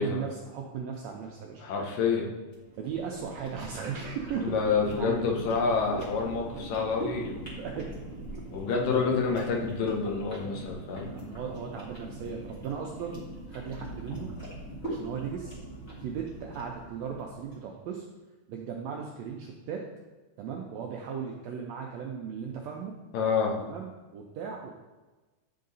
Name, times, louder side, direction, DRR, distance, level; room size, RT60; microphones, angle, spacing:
voice 1, 0.0-1.6 2.8-5.2 7.4-7.9 11.0-13.2 13.5-14.3 14.8-15.6 16.0-18.0 18.5-19.8 20.4-22.9 23.6-24.7, right 6 dB, 85° right, 0 dB, 1.5 m, -37 dB
voice 2, 1.6-2.3 4.4-7.5 8.5-11.1 23.1-23.6, left 5 dB, 85° left, 0 dB, 2.6 m, -28 dB
sound 1, 2.5-17.7, right 1 dB, 30° left, 1.6 m, -41 dB
10.0 x 3.8 x 4.0 m, 1.2 s
omnidirectional pair, 3.7 m